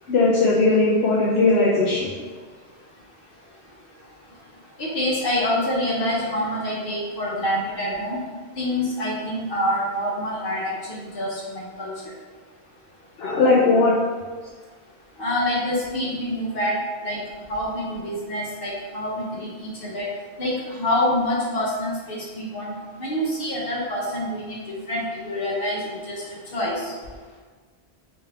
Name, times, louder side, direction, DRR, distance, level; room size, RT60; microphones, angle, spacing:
voice 1, 0.1-2.1 13.2-14.0, left 3 dB, 75° left, -5 dB, 0.9 m, -18 dB
voice 2, 4.8-8.2 8.6-11.9 15.2-16.7 17.0-17.2 17.5-20.1 20.4-22.7 23.0-24.6 24.9-26.2 26.5-26.9, left 1 dB, 60° left, -5 dB, 1.2 m, -26 dB
3.5 x 3.1 x 3.4 m, 1.5 s
omnidirectional pair, 1.1 m